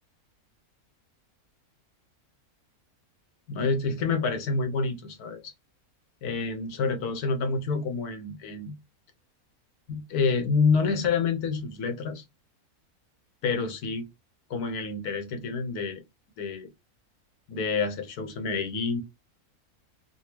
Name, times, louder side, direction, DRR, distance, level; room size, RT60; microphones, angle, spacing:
voice 1, 3.5-5.5 6.2-8.7 9.9-12.2 13.4-14.1 14.5-16.0 16.4-16.7 17.5-19.0, left 4 dB, 85° left, 1.4 m, -28 dB
4.1 x 2.3 x 2.9 m
omnidirectional pair, 1.6 m